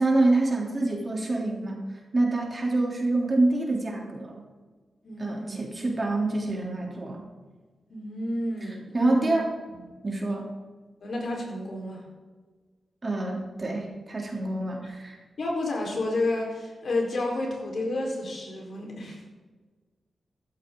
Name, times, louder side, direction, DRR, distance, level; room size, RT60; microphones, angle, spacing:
voice 1, 0.0-4.4 5.2-7.2 8.9-9.5 10.0-10.5 13.0-15.2, right 2 dB, 35° right, -1 dB, 3.2 m, -26 dB
voice 2, 5.0-5.6 7.9-9.4 11.0-12.0 14.8-14.9 15.4-19.2, left 2 dB, 60° left, -1 dB, 4.3 m, -31 dB
14.5 x 12.5 x 3.9 m, 1.4 s
cardioid pair, 75°, 0 cm